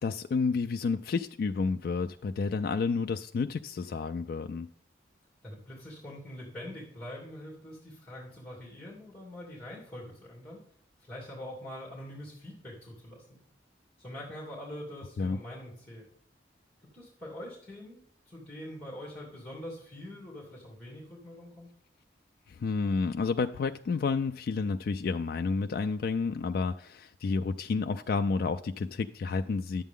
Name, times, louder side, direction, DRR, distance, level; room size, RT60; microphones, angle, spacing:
voice 1, 0.0-4.7 15.2-15.4 22.5-29.8, left 4 dB, 55° left, 7 dB, 0.3 m, -30 dB
voice 2, 5.4-10.6 11.0-13.4 14.0-16.1 16.9-21.7, left 1 dB, 10° left, -4 dB, 2.7 m, -44 dB
10.0 x 8.2 x 3.7 m, 0.66 s
head